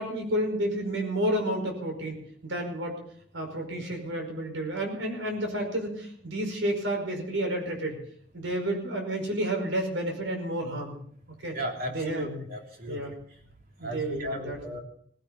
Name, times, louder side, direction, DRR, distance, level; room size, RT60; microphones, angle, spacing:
voice 1, 0.0-3.0 3.3-8.0 8.3-11.0 11.4-11.6 11.9-12.4 12.9-13.1 13.8-14.6, right 1 dB, 85° right, 3 dB, 5.2 m, -30 dB
voice 2, 11.5-13.1 13.8-14.8, equal, 50° right, 2 dB, 3.3 m, -35 dB
18.0 x 16.5 x 4.2 m, 0.62 s
head